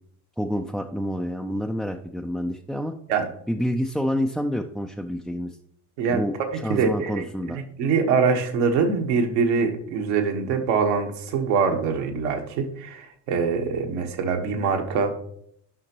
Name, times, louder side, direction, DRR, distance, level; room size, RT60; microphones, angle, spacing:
voice 1, 0.4-2.9 3.5-5.6 6.1-7.6, equal, ahead, 1 dB, 0.3 m, -28 dB
voice 2, 6.7-15.1, right 5 dB, 75° right, 4 dB, 1.4 m, -24 dB
12.0 x 5.8 x 2.9 m, 0.69 s
hypercardioid pair, 55°, 49 cm